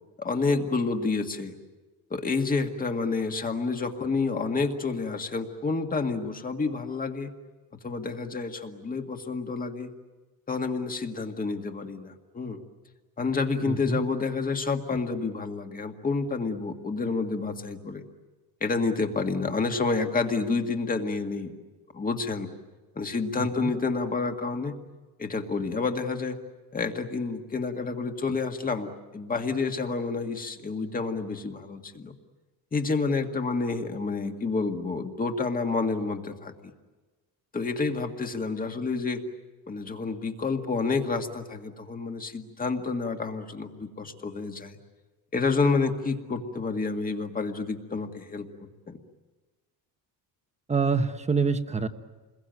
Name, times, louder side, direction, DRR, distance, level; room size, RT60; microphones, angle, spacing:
voice 1, 0.2-1.5 2.1-7.3 7.8-9.9 10.5-12.6 13.2-18.0 18.6-21.5 21.9-22.5 23.0-24.7 25.2-26.4 26.7-32.1 32.7-36.5 37.5-39.2 39.7-44.7 45.3-49.0, left 4 dB, 20° left, 5 dB, 1.9 m, -29 dB
voice 2, 13.7-14.0 23.4-23.7 50.7-51.9, right 5 dB, 15° right, 8 dB, 1.2 m, -26 dB
28.5 x 22.0 x 9.2 m, 1.3 s
cardioid pair, 160°, 40 cm